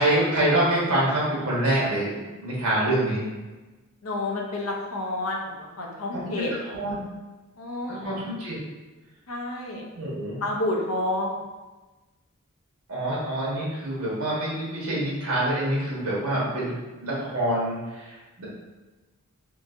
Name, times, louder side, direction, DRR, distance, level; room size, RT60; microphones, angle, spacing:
voice 1, 0.0-3.3 6.1-7.0 7.9-8.6 9.9-10.4 12.9-18.4, right 1 dB, 90° right, -6 dB, 1.4 m, -26 dB
voice 2, 4.0-5.5 5.8-6.5 7.6-8.1 9.3-9.8 10.4-11.4, left 1 dB, 70° left, 0 dB, 0.6 m, -29 dB
3.8 x 2.7 x 2.6 m, 1.2 s
head